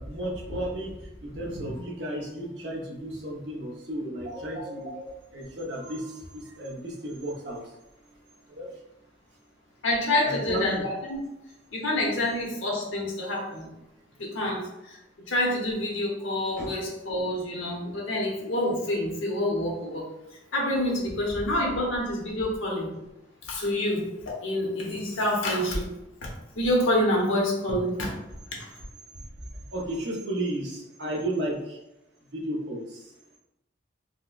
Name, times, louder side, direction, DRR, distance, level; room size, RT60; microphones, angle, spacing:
voice 1, 0.0-7.6 8.5-8.7 10.2-10.8 12.0-12.1 16.6-16.7 29.1-29.2 29.7-31.8 32.3-33.1, right 1 dB, 60° right, -2 dB, 0.8 m, -33 dB
voice 2, 9.8-11.2 11.7-13.7 14.2-15.0 15.3-20.0 20.5-22.9 23.4-25.9 26.2-26.3 26.5-28.1, left 1 dB, 90° left, -2 dB, 0.9 m, -27 dB
4.1 x 2.2 x 2.4 m, 0.91 s
head